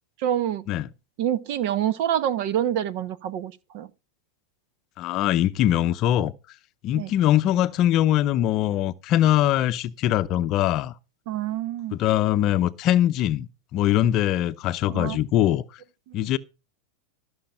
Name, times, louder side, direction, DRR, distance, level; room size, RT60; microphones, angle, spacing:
voice 1, 0.2-0.6 1.2-3.9 6.9-7.1 11.3-12.0 14.9-15.2 16.1-16.2, right 11 dB, 55° right, 1.1 m, -27 dB
voice 2, 5.0-6.3 6.8-10.9 12.0-15.8 16.1-16.4, left 12 dB, 40° left, 0.6 m, -22 dB
14.0 x 6.3 x 5.5 m
supercardioid pair, 135°, 0 cm